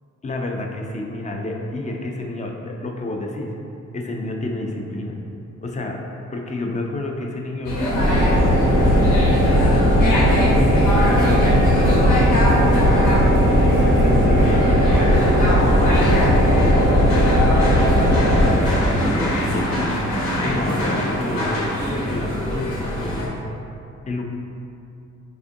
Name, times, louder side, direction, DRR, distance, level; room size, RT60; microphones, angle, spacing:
voice 1, 0.2-3.5 3.9-5.2 5.6-6.0 6.3-9.9 10.3-13.3 13.8-15.4 15.8-18.2 18.7-23.3 24.0-24.2, left 2 dB, 25° left, 1 dB, 0.4 m, -29 dB
sound 1, 7.6-23.3, equal, 85° left, 1.0 m, -23 dB
sound 2, 7.9-18.5, equal, 55° left, 1.0 m, -17 dB
Electric guitar, 12.5-20.2, right 4 dB, 45° right, 0.4 m, -33 dB
4.3 x 2.5 x 2.6 m, 2.6 s
cardioid pair, 90°, 30 cm